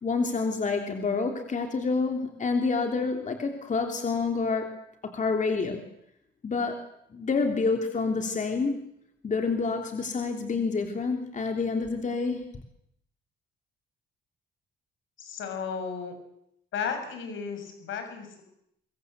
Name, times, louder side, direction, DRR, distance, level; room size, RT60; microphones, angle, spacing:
voice 1, 0.0-4.7 5.0-5.8 6.4-6.8 7.1-8.9 9.2-12.4, left 4 dB, 40° left, 4 dB, 3.2 m, -28 dB
voice 2, 15.2-16.2 16.7-18.4, left 6 dB, 75° left, 7 dB, 6.9 m, -34 dB
23.5 x 23.0 x 8.1 m, 0.77 s
cardioid pair, 90°, 20 cm